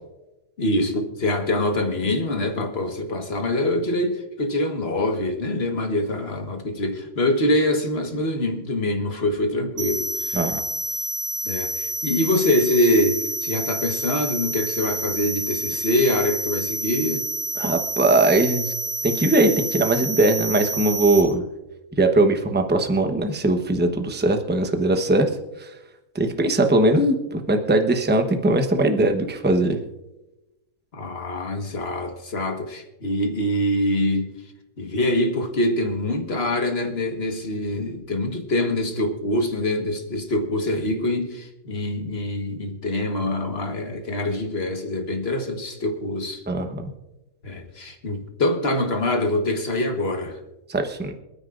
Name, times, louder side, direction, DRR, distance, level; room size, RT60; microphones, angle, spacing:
voice 1, 0.6-10.4 11.4-17.2 30.9-34.3 34.8-46.4 47.4-50.4, left 1 dB, 45° left, 1.6 m, -24 dB
sound 1, 9.8-21.2, right 2 dB, 45° right, 2.1 m, -29 dB
voice 2, 17.6-18.6 19.0-21.4 22.0-25.3 26.1-29.8 46.5-46.9 50.7-51.1, right 2 dB, 10° right, 0.8 m, -20 dB
27.0 x 9.7 x 2.5 m
omnidirectional pair, 1.5 m